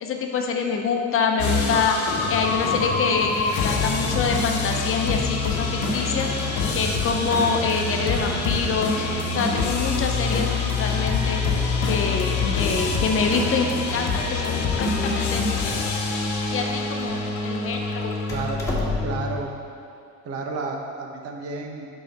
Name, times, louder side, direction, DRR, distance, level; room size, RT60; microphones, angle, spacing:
voice 1, 0.0-2.0 2.3-11.4 11.8-15.9 16.5-18.1, left 5 dB, 45° left, 2 dB, 0.8 m, -26 dB
sound 1, 1.4-19.4, left 3 dB, 70° left, 1.1 m, -25 dB
Door, 13.8-19.4, left 3 dB, 10° left, 1.4 m, -35 dB
voice 2, 18.3-18.6 19.0-19.5 20.2-21.9, right 3 dB, 50° right, 2 dB, 1.0 m, -31 dB
7.6 x 5.5 x 4.2 m, 2.4 s
cardioid pair, 115°, 30 cm